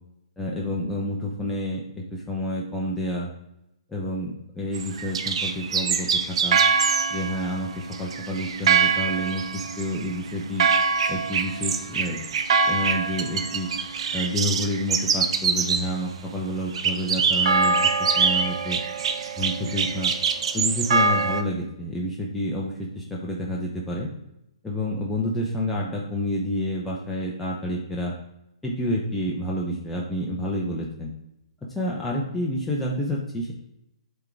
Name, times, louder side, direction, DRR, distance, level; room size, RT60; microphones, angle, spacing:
voice 1, 0.4-3.3 3.9-6.6 7.1-10.7 11.1-12.2 12.6-13.7 14.1-18.8 19.4-20.1 20.5-24.1 24.6-28.1 28.6-31.1 31.7-33.5, equal, 5° left, -4 dB, 0.8 m, -29 dB
sound 1, 4.7-16.0 16.7-21.4, right 5 dB, 60° right, 0.6 m, -24 dB
7.9 x 3.8 x 3.4 m, 0.84 s
hypercardioid pair, 135°, 3 cm